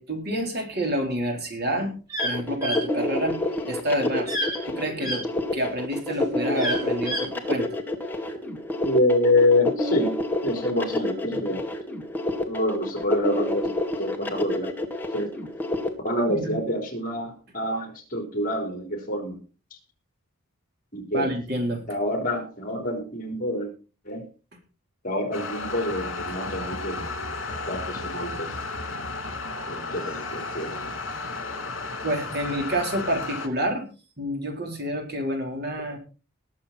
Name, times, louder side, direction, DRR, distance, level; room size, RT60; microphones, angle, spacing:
voice 1, 0.0-1.9 2.2-3.4 3.7-4.4 4.6-5.3 5.5-7.8 16.2-16.6 21.1-21.8 32.0-33.9 34.2-36.0, equal, 45° right, 3 dB, 3.9 m, -28 dB
sound 1, 2.1-2.3 2.6-2.8 4.3-4.6 5.0-5.2 6.6-7.2, equal, 15° right, 6.1 m, -28 dB
sound 2, 2.2-15.9, left 1 dB, 10° left, 1.9 m, -28 dB
voice 2, 8.8-10.2 10.4-11.6 12.5-13.7 14.0-14.7 15.1-15.3 16.0-19.4 20.9-21.3 21.9-23.7 24.1-24.2 25.0-27.0 27.7-28.5 29.7-30.7, left 1 dB, 40° left, 4 dB, 4.1 m, -26 dB
sound 3, 25.3-33.5, left 3 dB, 60° left, 3.0 m, -33 dB
20.0 x 7.5 x 4.3 m, 0.34 s
head